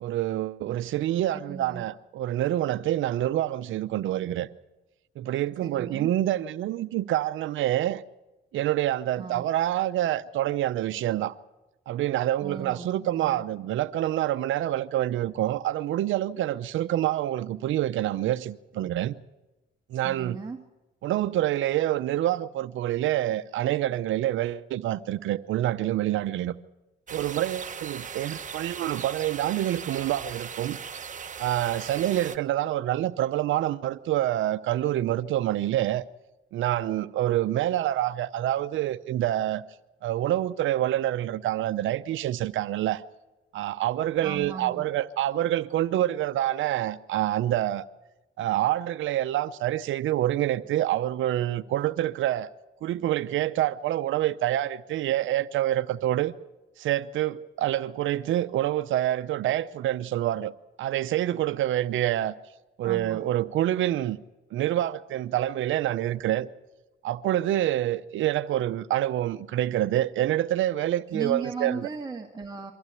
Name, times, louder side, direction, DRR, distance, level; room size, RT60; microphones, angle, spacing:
voice 1, 0.0-4.5 5.2-8.0 8.5-11.3 11.9-19.1 19.9-20.4 21.0-26.6 27.1-30.8 31.4-36.0 36.5-39.6 40.0-43.0 43.5-47.8 48.4-52.5 52.8-56.3 56.8-60.5 60.8-62.3 62.8-64.2 64.5-66.5 67.0-71.8, right 13 dB, 80° right, 0.7 m, -27 dB
voice 2, 1.3-1.9 5.6-6.1 9.2-9.5 12.4-13.5 19.9-20.6 44.2-44.9 62.8-63.3 71.1-72.7, right 4 dB, 20° right, 1.9 m, -37 dB
sound 1, 27.1-32.4, right 6 dB, 40° right, 1.3 m, -38 dB
23.5 x 15.5 x 8.3 m
cardioid pair, 90°, 20 cm